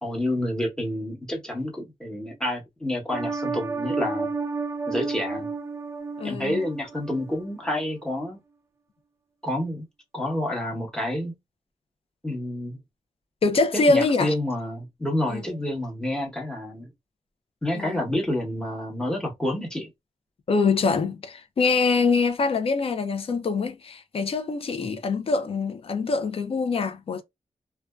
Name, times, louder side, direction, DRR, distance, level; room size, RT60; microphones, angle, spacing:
voice 1, 0.0-4.3 4.9-5.5 6.2-8.4 9.4-9.8 10.1-11.3 12.2-12.8 13.7-16.9 17.6-19.9 24.8-24.9, left 1 dB, 5° left, 0.9 m, -29 dB
sound 1, 3.1-7.3 7.7-7.8, right 4 dB, 20° right, 0.3 m, -31 dB
voice 2, 6.2-6.6 13.4-14.3 15.3-15.4 17.7-18.0 20.5-27.2, left 4 dB, 50° left, 0.5 m, -24 dB
2.5 x 2.2 x 2.2 m
wide cardioid pair, 120°, 12 cm